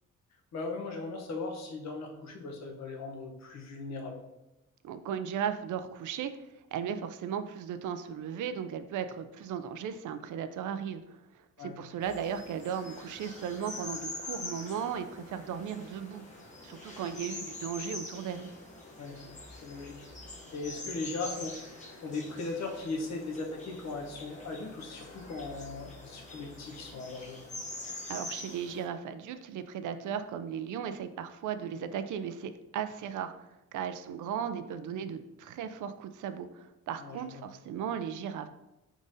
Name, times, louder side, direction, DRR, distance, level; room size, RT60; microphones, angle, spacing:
voice 1, 0.5-4.2 11.6-11.8 19.0-20.0 20.5-21.6 22.0-27.4 37.0-37.5, left 3 dB, 65° left, 1 dB, 0.9 m, -38 dB
voice 2, 4.8-6.3 6.7-11.2 11.6-16.2 16.6-18.5 28.1-33.3 33.7-38.5, right 8 dB, 85° right, 10 dB, 0.4 m, -36 dB
sound 1, 12.0-28.9, left 2 dB, 25° left, 0.8 m, -44 dB
4.9 x 3.8 x 2.6 m, 0.94 s
wide cardioid pair, 145°, 30 cm